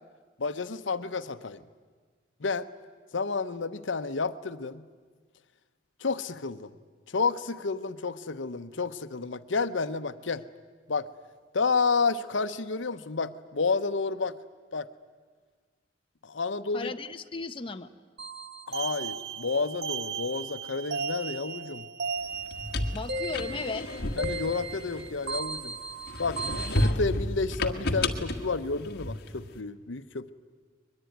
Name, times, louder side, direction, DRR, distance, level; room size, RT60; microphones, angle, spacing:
voice 1, 0.4-1.6 2.4-2.7 3.1-4.9 6.0-6.7 7.1-10.4 10.9-11.1 11.5-14.4 14.7-14.9 16.2-16.9 18.7-21.9 24.2-25.8 26.2-30.3, left 4 dB, 80° left, 11 dB, 0.9 m, -30 dB
voice 2, 16.7-17.9 22.9-23.9, left 3 dB, 30° left, 7 dB, 0.8 m, -36 dB
sound 1, 18.2-26.9, right 4 dB, 60° right, 1.0 m, -36 dB
sound 2, 22.3-25.6 26.1-29.5, left 1 dB, 55° left, 1.6 m, -31 dB
22.0 x 22.0 x 9.3 m, 1.5 s
head